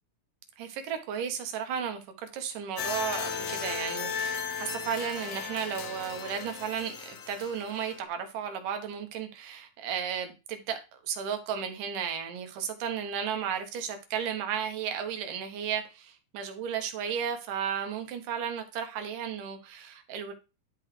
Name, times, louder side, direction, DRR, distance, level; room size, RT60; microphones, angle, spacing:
voice 1, 0.6-20.3, right 8 dB, 85° right, 2.6 m, -34 dB
sound 1, 2.8-8.0, left 6 dB, 70° left, 1.5 m, -36 dB
11.0 x 3.9 x 3.1 m
omnidirectional pair, 3.7 m